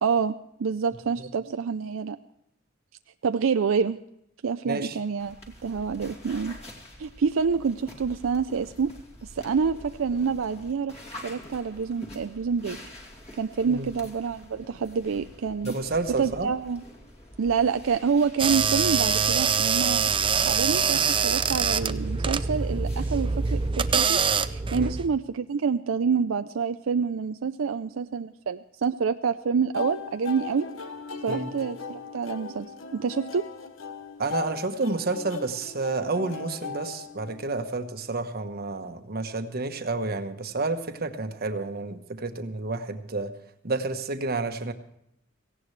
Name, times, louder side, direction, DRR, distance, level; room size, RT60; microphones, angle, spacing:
voice 1, 0.0-2.2 3.2-4.0 4.4-5.4 5.6-6.6 7.0-8.9 9.2-12.8 13.4-15.7 16.2-16.8 17.4-20.1 20.5-24.2 24.5-30.7 31.2-33.5, right 6 dB, 85° right, 9 dB, 0.5 m, -27 dB
voice 2, 4.7-5.0 13.7-13.9 15.6-16.5 24.7-25.0 31.3-31.5 34.2-43.3 43.6-44.7, right 3 dB, 50° right, 7 dB, 1.2 m, -30 dB
sound 1, 5.2-23.7, left 1 dB, 35° left, 2.6 m, -47 dB
sound 2, 18.4-25.1, right 6 dB, 25° right, 0.5 m, -24 dB
sound 3, 29.7-37.7, left 5 dB, 75° left, 1.0 m, -38 dB
17.5 x 16.5 x 3.3 m, 0.77 s
head